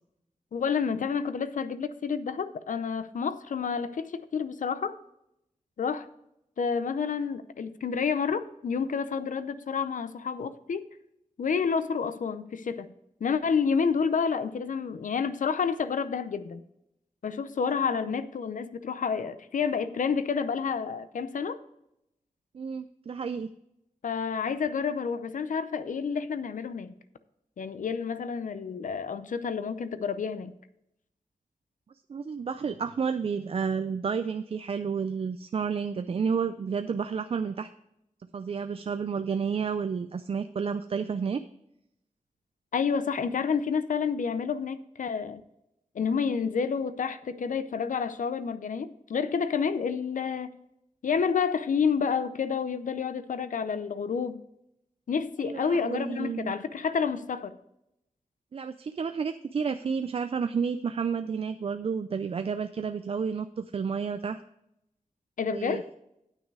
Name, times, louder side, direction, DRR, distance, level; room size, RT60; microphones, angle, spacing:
voice 1, 0.5-5.0 5.8-6.1 6.6-10.9 11.4-12.9 13.2-16.6 17.2-21.6 24.0-26.9 27.6-30.5 42.7-45.4 45.9-50.5 51.0-54.4 55.1-57.5 65.4-65.9, left 6 dB, 75° left, 0.6 m, -29 dB
voice 2, 22.5-23.5 32.1-37.7 38.3-41.4 55.4-56.5 58.5-64.4 65.4-65.8, right 6 dB, 45° right, 0.4 m, -31 dB
9.5 x 6.2 x 4.8 m
wide cardioid pair, 135°, 13 cm